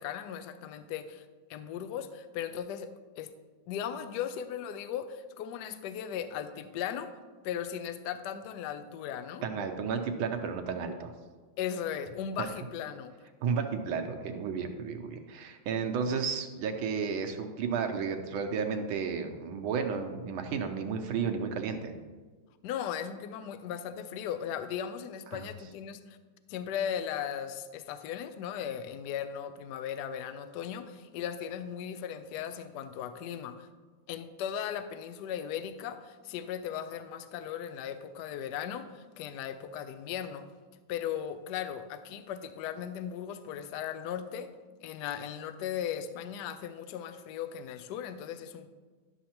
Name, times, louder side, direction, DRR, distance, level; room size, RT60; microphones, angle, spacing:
voice 1, 0.0-3.3 3.7-7.1 7.4-9.4 11.6-13.1 22.6-26.2 26.5-33.7 34.1-40.5 40.9-44.5 44.8-48.7, left 9 dB, 80° left, 10 dB, 0.9 m, -37 dB
voice 2, 9.4-11.1 12.4-12.5 13.4-21.9 25.3-25.5, right 6 dB, 80° right, 5 dB, 1.5 m, -32 dB
11.5 x 6.4 x 2.9 m, 1.4 s
omnidirectional pair, 2.3 m